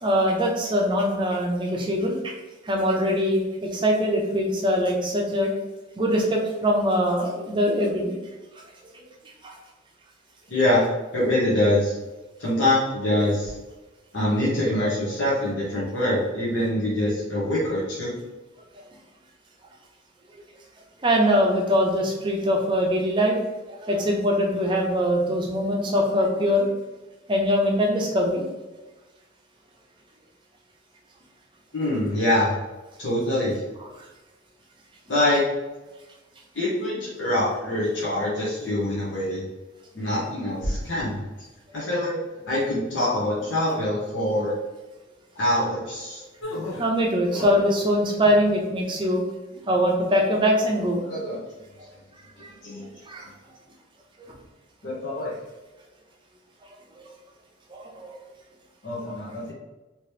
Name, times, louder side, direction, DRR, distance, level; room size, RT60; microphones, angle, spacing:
voice 1, 0.0-2.3 2.6-5.5 6.0-8.1 8.9-9.1 9.4-9.6 21.0-23.4 23.7-26.7 27.3-28.4 46.8-49.2 49.7-51.0 52.4-52.5 53.1-53.3 57.7-58.1, equal, 25° right, 0 dB, 0.6 m, -22 dB
voice 2, 10.5-10.8 11.1-12.0 12.4-13.5 14.1-18.1 31.7-32.5 33.0-33.6 35.1-35.4 36.5-39.4 39.9-41.2 41.7-42.2 42.5-44.5 45.3-46.2 51.0-51.4 52.6-52.9 54.8-55.3 58.8-59.5, left 1 dB, 60° left, -8 dB, 0.9 m, -24 dB
sound 1, 46.4-47.7 48.1-48.6, left 1 dB, 80° left, 1.0 m, -34 dB
2.9 x 2.9 x 3.2 m, 1.1 s
head